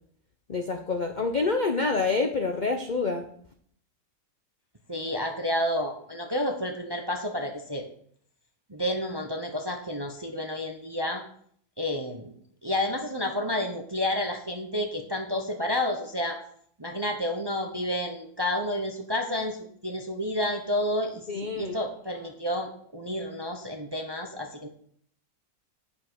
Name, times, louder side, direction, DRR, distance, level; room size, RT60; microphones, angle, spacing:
voice 1, 0.5-3.3 21.3-21.8, left 4 dB, 50° left, 5 dB, 0.5 m, -27 dB
voice 2, 4.9-7.8 8.7-11.2 11.8-12.3 12.6-16.4 16.8-24.7, left 1 dB, 20° right, 4 dB, 0.6 m, -30 dB
8.9 x 5.5 x 6.2 m, 0.62 s
omnidirectional pair, 1.9 m